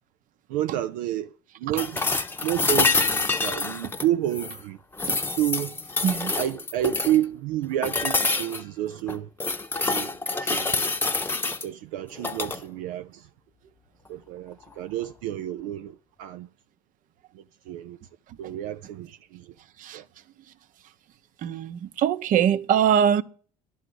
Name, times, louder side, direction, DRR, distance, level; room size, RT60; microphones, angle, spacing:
voice 1, 0.5-2.0 2.4-3.1 3.4-4.8 5.4-5.8 6.4-9.3 9.9-10.1 10.4-10.9 11.6-13.3 14.1-16.5 17.3-18.0 18.4-19.5 19.9-20.1, right 12 dB, 80° right, 0.5 m, -30 dB
sound 1, 1.8-4.6 5.0-7.2 7.8-8.6 9.1-11.7 12.2-12.6 14.6-14.7, left 3 dB, 15° left, 0.8 m, -26 dB
voice 2, 6.0-6.4 10.3-10.5 18.4-18.5 19.8-20.0 21.4-23.2, right 9 dB, 55° right, 0.9 m, -24 dB
11.0 x 6.4 x 7.8 m
supercardioid pair, 85°, 16 cm